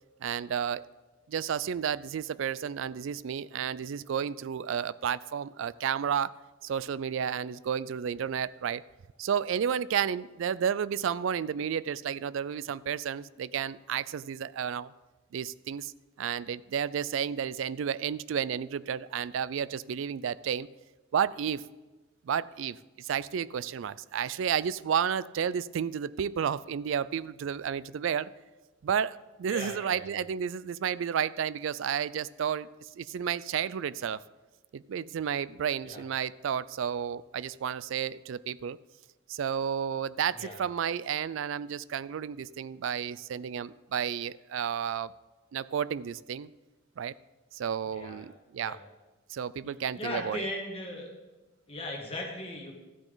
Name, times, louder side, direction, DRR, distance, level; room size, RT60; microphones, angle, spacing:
voice 1, 0.2-0.8 1.3-6.3 6.6-8.8 9.2-14.9 15.3-15.9 16.2-20.7 21.1-21.6 22.3-28.3 28.8-34.2 34.7-38.8 39.3-45.1 45.5-46.5 47.0-47.1 47.5-48.8 49.3-50.5, right 8 dB, 65° right, 19 dB, 0.3 m, -32 dB
voice 2, 29.5-30.1 35.9-36.0 40.3-40.6 47.9-48.3 48.6-48.8 49.6-51.1 51.7-52.7, left 1 dB, 25° left, -1 dB, 1.8 m, -38 dB
14.0 x 8.9 x 3.9 m, 1.2 s
head